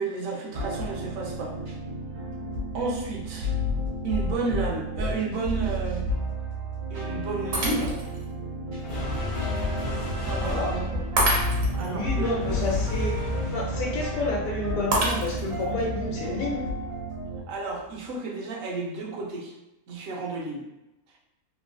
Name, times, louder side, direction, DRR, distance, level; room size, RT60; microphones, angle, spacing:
voice 1, 0.0-1.6 2.7-3.5 4.0-6.1 6.9-7.9 10.2-11.0 11.7-12.6 17.5-19.5 19.9-20.7, right 3 dB, 75° right, -1 dB, 1.1 m, -32 dB
sound 1, 0.5-17.4, equal, 90° right, 1.4 m, -31 dB
Shatter, 7.5-8.2 8.8-8.9 11.2-11.9 14.9-15.6, right 2 dB, 55° right, 0.9 m, -27 dB
sound 2, 8.8-17.4, left 2 dB, 50° left, 0.3 m, -34 dB
voice 2, 10.1-10.7 11.8-16.6, left 2 dB, 75° left, -2 dB, 1.0 m, -30 dB
3.1 x 2.5 x 2.5 m, 0.94 s
omnidirectional pair, 1.5 m